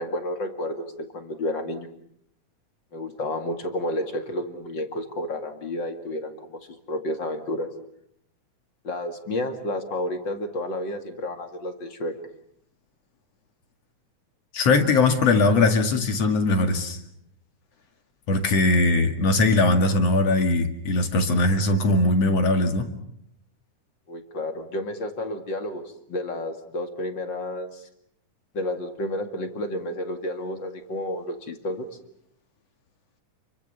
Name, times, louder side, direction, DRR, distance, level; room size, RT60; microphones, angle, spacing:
voice 1, 0.0-1.9 2.9-7.7 8.8-12.1 24.1-25.8 26.1-27.9 28.5-31.9, left 1 dB, 40° left, 7 dB, 2.6 m, -31 dB
voice 2, 14.5-17.0 18.3-22.9, left 2 dB, 55° left, 6 dB, 3.1 m, -20 dB
29.0 x 24.0 x 7.0 m, 0.72 s
omnidirectional pair, 3.5 m